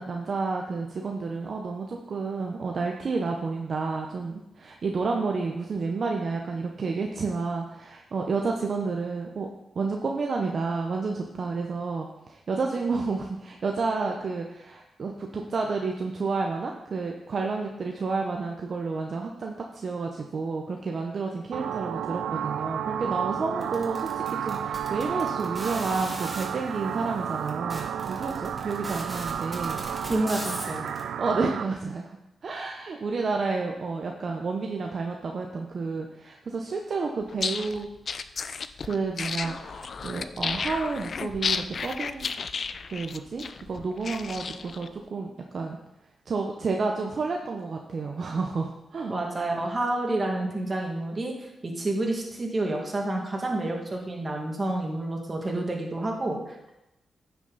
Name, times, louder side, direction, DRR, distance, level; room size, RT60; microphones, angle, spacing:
voice 1, 0.0-9.5 9.8-29.8 31.2-32.2 32.4-37.9 38.8-42.3 42.9-45.8 46.3-49.1, right 4 dB, 60° right, 2 dB, 0.8 m, -30 dB
sound 1, 21.5-31.6, right 9 dB, 85° right, 0.4 m, -32 dB
sound 2, 23.6-26.5 27.1-27.2 27.5-31.0, right 1 dB, 15° right, 2.6 m, -39 dB
voice 2, 30.1-30.9 49.1-56.7, right 2 dB, 35° right, 1 dB, 2.2 m, -29 dB
sound 3, 37.3-44.9, left 5 dB, 60° left, 0.4 m, -33 dB
9.6 x 6.0 x 4.0 m, 0.90 s
cardioid pair, 60°, 0 cm